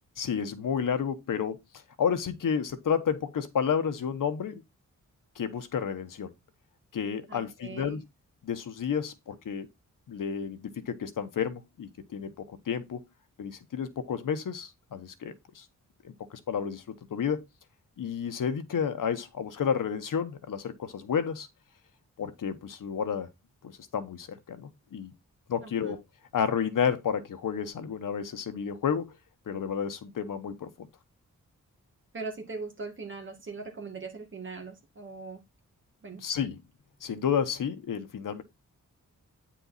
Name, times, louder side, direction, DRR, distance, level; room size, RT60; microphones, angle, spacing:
voice 1, 0.2-1.6 2.0-4.6 5.4-6.3 6.9-8.0 8.4-9.7 10.1-13.0 13.4-15.6 16.0-17.4 18.0-21.5 22.2-23.3 23.6-25.1 25.5-26.0 26.3-29.1 29.5-30.9 36.2-36.6 37.0-38.4, left 7 dB, 80° left, 1.2 m, -31 dB
voice 2, 7.3-8.0 25.6-26.0 32.1-35.4 36.0-36.2, right 4 dB, 40° right, 2.1 m, -40 dB
9.2 x 4.5 x 4.1 m
wide cardioid pair, 175°, 32 cm